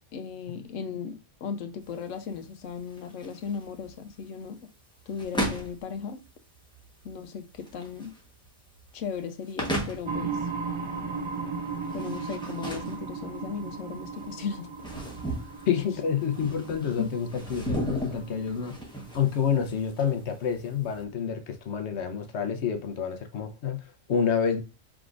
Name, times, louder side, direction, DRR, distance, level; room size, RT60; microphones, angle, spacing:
voice 1, 0.1-4.7 5.1-6.2 7.0-8.1 8.9-10.5 11.9-14.7 17.0-17.1, left 6 dB, 85° left, 1.1 m, -36 dB
sound 1, 1.8-21.0, right 1 dB, 5° left, 1.1 m, -37 dB
sound 2, 10.1-19.6, right 5 dB, 50° right, 0.3 m, -37 dB
voice 2, 15.7-18.8 19.1-24.6, left 7 dB, 65° left, 1.0 m, -28 dB
5.0 x 3.5 x 2.5 m
omnidirectional pair, 1.3 m